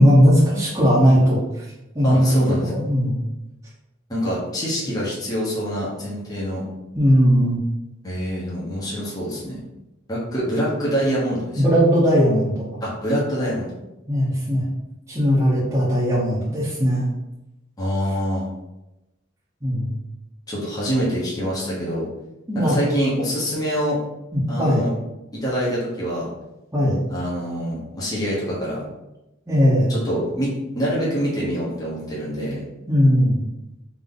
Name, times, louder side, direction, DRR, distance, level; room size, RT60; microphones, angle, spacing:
voice 1, 0.0-1.7 1.9-3.2 6.9-7.6 11.6-12.7 14.1-14.6 15.1-17.1 19.6-20.0 22.5-22.8 24.3-24.8 26.7-27.0 29.5-29.9 32.9-33.4, equal, 15° right, -10 dB, 0.9 m, -18 dB
voice 2, 2.0-2.6 4.1-6.6 8.0-9.6 10.1-11.6 12.8-13.7 17.8-18.4 20.5-22.1 22.5-24.0 24.5-24.9 25.3-26.3 27.1-28.8 29.9-32.6, equal, 20° left, -7 dB, 1.0 m, -25 dB
3.6 x 2.8 x 3.8 m, 0.96 s
head